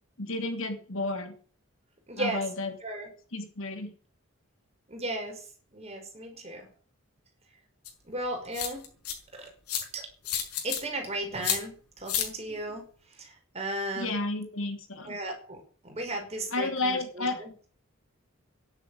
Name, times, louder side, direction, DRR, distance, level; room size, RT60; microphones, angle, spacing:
voice 1, 0.2-1.4 2.2-2.7 3.3-3.9 14.0-15.2 16.5-17.4, left 2 dB, 60° left, 7 dB, 3.1 m, -32 dB
voice 2, 2.1-2.4 2.8-3.1 4.9-5.4 5.7-6.7 8.0-8.9 9.3-9.5 9.9-10.1 10.6-12.9 13.1-14.2 15.0-17.5, right 1 dB, 30° right, 4 dB, 5.5 m, -35 dB
sound 1, 7.9-8.0 8.5-9.1 9.7-9.8 10.3-10.8 11.4-11.6 12.1-12.3, left 9 dB, 90° left, 5.6 m, -29 dB
12.5 x 11.5 x 8.9 m, 0.43 s
head